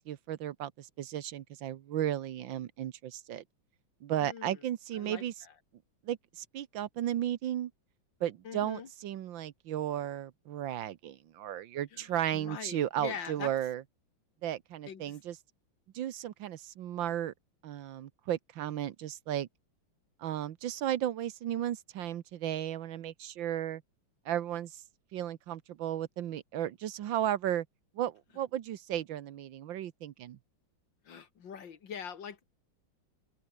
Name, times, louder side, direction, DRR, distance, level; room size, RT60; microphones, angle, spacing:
voice 1, 0.1-3.4 4.0-5.3 6.1-7.7 8.2-13.8 14.4-15.4 15.9-17.3 17.6-19.5 20.2-23.8 24.3-24.8 25.1-27.7 28.0-30.4, right 11 dB, 70° right, 1.6 m, -34 dB
voice 2, 4.2-4.6 4.9-5.5 8.4-8.9 11.9-13.5 14.9-15.2 31.0-32.4, left 7 dB, 65° left, 2.5 m, -43 dB
open air
omnidirectional pair, 2.2 m